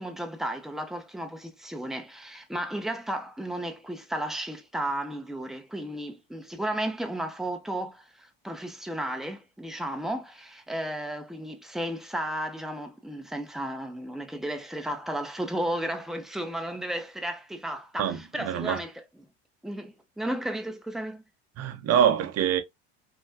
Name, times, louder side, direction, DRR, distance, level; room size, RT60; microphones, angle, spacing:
voice 1, 0.0-19.0 19.6-21.2, right 1 dB, ahead, 0.7 m, -34 dB
voice 2, 18.0-18.8 21.6-22.6, right 9 dB, 50° right, 0.8 m, -25 dB
3.3 x 2.2 x 2.6 m
hypercardioid pair, 75°, 32 cm